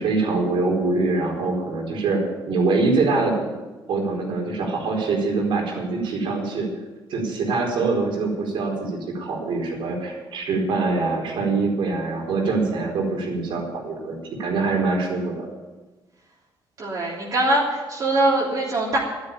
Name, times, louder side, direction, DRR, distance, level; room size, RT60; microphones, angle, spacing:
voice 1, 0.0-2.2 2.5-3.5 3.9-6.7 7.1-15.5, right 3 dB, 75° right, 0 dB, 4.5 m, -24 dB
voice 2, 16.8-19.0, right 2 dB, 45° right, -4 dB, 3.2 m, -22 dB
12.0 x 10.0 x 8.8 m, 1.2 s
cardioid pair, 145°, 9 cm